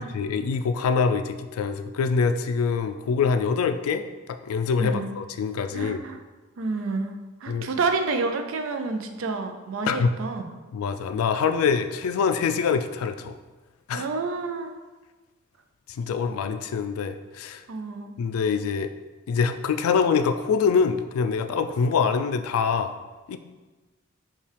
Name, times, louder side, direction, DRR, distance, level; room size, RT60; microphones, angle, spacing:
voice 1, 0.0-4.0 4.3-6.0 7.5-7.7 9.9-10.1 10.7-13.3 13.9-14.1 15.9-17.6 18.2-18.9 19.3-22.9 23.3-23.4, left 5 dB, 85° left, 9 dB, 0.3 m, -24 dB
voice 2, 4.8-5.2 5.7-6.2 6.6-10.5 13.9-14.7 17.7-18.1, right 3 dB, 65° right, 6 dB, 0.4 m, -29 dB
5.4 x 2.3 x 3.3 m, 1.2 s
head